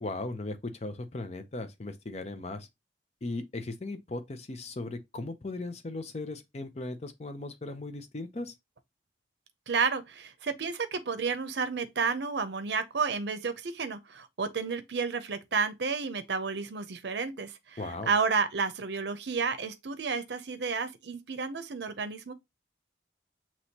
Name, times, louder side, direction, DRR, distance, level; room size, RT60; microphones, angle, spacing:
voice 1, 0.0-2.7 3.2-8.5 17.8-18.1, left 2 dB, 35° left, 0.6 m, -37 dB
voice 2, 9.7-17.8 18.1-22.3, right 5 dB, 70° right, 0.6 m, -31 dB
6.1 x 3.0 x 2.8 m
head